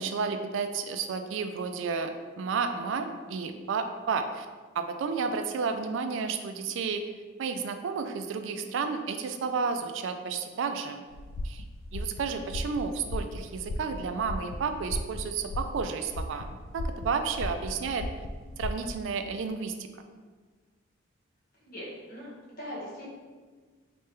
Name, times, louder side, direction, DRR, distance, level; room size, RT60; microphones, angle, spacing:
voice 1, 0.0-4.5 4.7-7.0 7.4-11.0 11.4-11.6 11.9-16.5 16.7-18.0 18.6-19.7, right 5 dB, 65° right, 7 dB, 0.3 m, -31 dB
sound 1, 11.1-19.0, left 1 dB, 80° left, 0.3 m, -37 dB
voice 2, 21.6-23.1, equal, 50° left, -6 dB, 1.2 m, -41 dB
3.3 x 3.1 x 3.3 m, 1.5 s
head